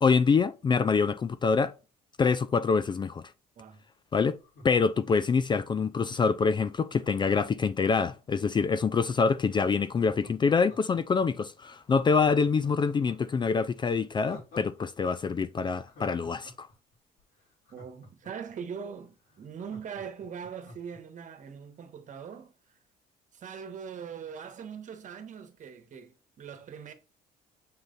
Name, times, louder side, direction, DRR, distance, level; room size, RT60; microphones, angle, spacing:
voice 1, 0.0-1.7 2.2-3.2 4.1-4.4 4.6-16.7, left 5 dB, 25° left, 0.4 m, -25 dB
Laughter, 4.4-6.1 6.9-9.1 9.8-11.2 11.6-11.7 12.1-14.9 15.1-15.2 15.6-18.5 18.9-19.0 19.2-21.0 21.4-21.5, left 1 dB, 65° left, 3.3 m, -50 dB
voice 2, 17.7-22.8 23.3-26.9, right 7 dB, 50° right, 1.3 m, -41 dB
7.5 x 3.3 x 3.9 m
cardioid pair, 110°, 17 cm